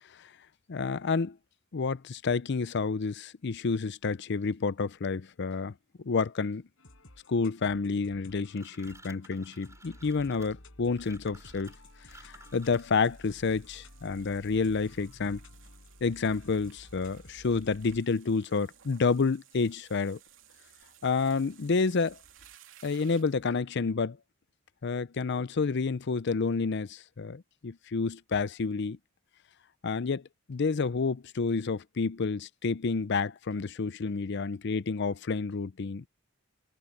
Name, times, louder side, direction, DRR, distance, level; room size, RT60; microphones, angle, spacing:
voice 1, 0.7-1.4 1.7-5.7 6.0-6.6 7.3-11.7 12.2-15.4 16.0-20.2 21.0-22.2 22.8-24.2 24.8-29.0 29.8-30.2 30.5-36.0, left 4 dB, 60° left, 0.6 m, -29 dB
sound 1, 6.8-18.0, left 1 dB, 80° left, 4.9 m, -53 dB
sound 2, 8.5-13.1, right 2 dB, 15° right, 6.8 m, -55 dB
sound 3, 11.6-23.5, right 10 dB, 70° right, 3.2 m, -59 dB
head